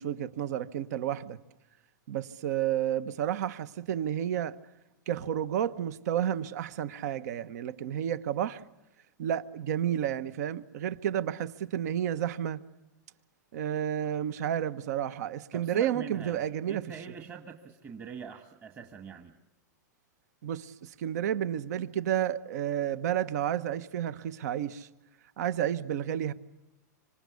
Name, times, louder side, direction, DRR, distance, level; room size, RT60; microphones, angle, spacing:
voice 1, 0.0-1.4 2.1-4.6 5.1-8.6 9.2-12.6 13.5-16.8 20.4-24.9 25.4-26.3, right 10 dB, 60° right, 1.2 m, -31 dB
voice 2, 15.5-19.4, right 6 dB, 20° right, 1.6 m, -44 dB
26.5 x 26.0 x 8.4 m
hypercardioid pair, 145°, 10 cm